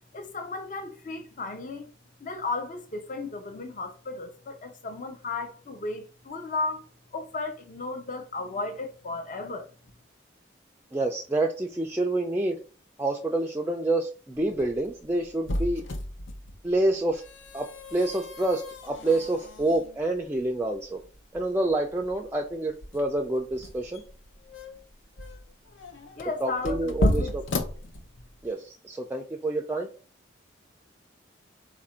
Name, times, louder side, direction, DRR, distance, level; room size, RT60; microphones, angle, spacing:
voice 1, 0.1-1.9 2.2-6.8 7.1-9.7 26.2-27.4, left 3 dB, 40° left, 0.5 m, -34 dB
voice 2, 10.9-12.6 13.0-15.8 16.6-17.2 17.5-17.7 17.9-21.0 21.3-24.0 26.4-27.4 28.4-29.9, right 2 dB, 10° right, 0.3 m, -27 dB
sound 1, 14.3-28.5, left 1 dB, 80° left, 0.7 m, -34 dB
4.2 x 2.5 x 4.2 m
head